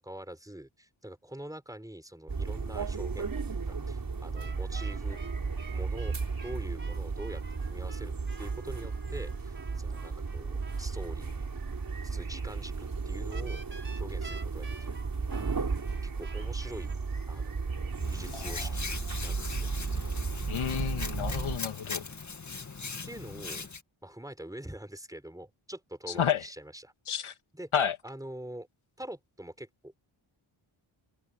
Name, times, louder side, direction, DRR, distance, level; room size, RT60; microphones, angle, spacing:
voice 1, 0.0-5.2 5.7-6.2 6.4-11.4 12.0-17.0 17.3-19.7 20.8-20.9 23.0-23.7 24.0-27.2 27.5-27.7 28.0-28.7 29.0-30.0, right 1 dB, 5° right, 4.4 m, -45 dB
sound 1, 2.3-21.6, right 4 dB, 45° right, 4.8 m, -34 dB
sound 2, 4.3-10.8 13.3-17.0, right 3 dB, 25° right, 5.0 m, -51 dB
Hands, 18.0-23.8, left 4 dB, 35° left, 2.2 m, -39 dB
voice 2, 18.3-18.7 20.5-22.0 26.1-26.5 27.1-27.3 27.7-28.0, left 8 dB, 85° left, 2.3 m, -31 dB
wide cardioid pair, 100°, 48 cm